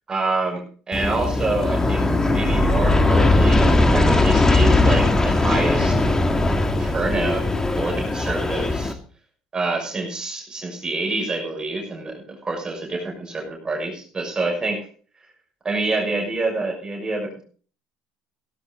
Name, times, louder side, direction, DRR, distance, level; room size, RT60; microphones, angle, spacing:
voice 1, 0.1-6.0 6.8-7.5 7.7-8.9 9.5-14.8 15.6-17.4, right 3 dB, 25° right, 0 dB, 6.1 m, -27 dB
Aircraft, 0.9-8.9, left 2 dB, 20° left, 2.3 m, -19 dB
17.0 x 13.0 x 3.9 m, 0.42 s
supercardioid pair, 80°, 3 cm